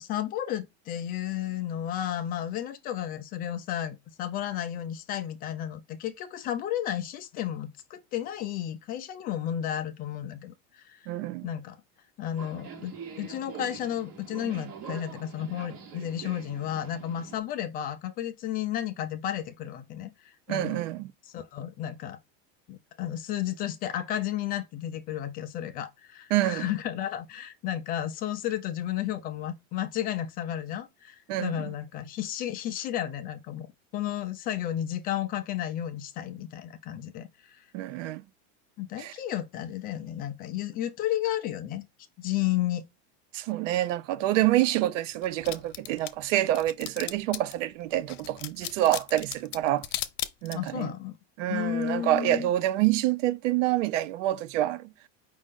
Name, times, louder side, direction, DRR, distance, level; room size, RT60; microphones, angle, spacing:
voice 1, 0.0-11.0 11.4-11.8 12.2-20.8 21.3-22.2 22.7-33.7 33.9-37.7 38.8-41.8 42.2-42.8 50.5-51.2 51.5-52.5, left 11 dB, 25° left, 0.3 m, -33 dB
voice 2, 11.1-11.5 20.5-21.1 26.3-26.7 31.3-31.6 37.7-38.2 39.0-39.1 43.3-49.9 50.4-50.9 51.4-54.9, right 14 dB, 80° right, 0.6 m, -27 dB
Subway metro underground, 12.4-17.4, right 6 dB, 40° right, 1.1 m, -44 dB
sound 1, 45.1-47.6 48.1-50.8, left 14 dB, 80° left, 0.8 m, -36 dB
5.3 x 2.5 x 3.5 m
supercardioid pair, 160°, 37 cm